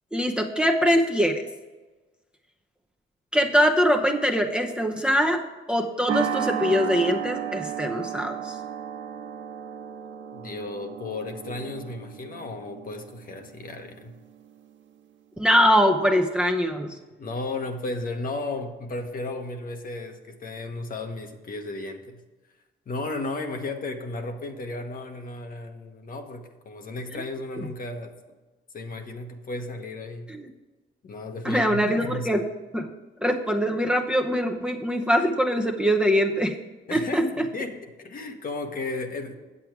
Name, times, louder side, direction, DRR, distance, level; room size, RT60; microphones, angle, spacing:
voice 1, 0.1-1.5 3.3-5.4 5.7-8.5 15.4-17.0 30.3-30.5 31.4-32.4 32.7-32.9 33.2-36.6 36.9-37.5, equal, 5° right, 3 dB, 0.7 m, -23 dB
sound 1, 6.1-14.6, right 9 dB, 70° right, 1.0 m, -34 dB
voice 2, 10.3-14.2 17.2-22.2 22.9-28.1 28.7-30.3 31.0-32.4 36.9-39.3, left 2 dB, 45° left, 5 dB, 1.1 m, -34 dB
8.7 x 7.6 x 4.6 m, 1.2 s
cardioid pair, 90°, 20 cm